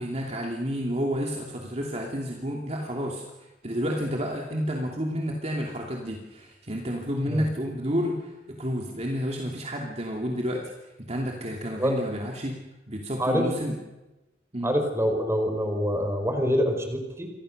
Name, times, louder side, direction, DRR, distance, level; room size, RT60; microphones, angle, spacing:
voice 1, 0.0-3.2 3.6-12.5 12.9-13.8 14.5-14.7, equal, 35° right, 0 dB, 2.8 m, -30 dB
voice 2, 14.6-17.3, equal, 15° right, 4 dB, 4.9 m, -25 dB
29.0 x 25.0 x 6.7 m, 1.1 s
head